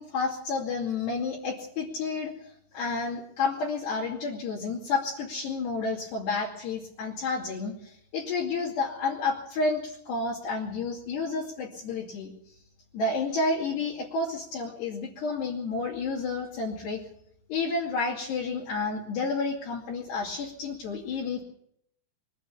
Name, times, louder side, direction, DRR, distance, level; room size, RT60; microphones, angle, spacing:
voice 1, 0.0-12.3 12.9-17.0 17.5-21.4, left 3 dB, 60° left, -3 dB, 4.3 m, -30 dB
23.0 x 13.0 x 8.8 m, 0.71 s
omnidirectional pair, 5.9 m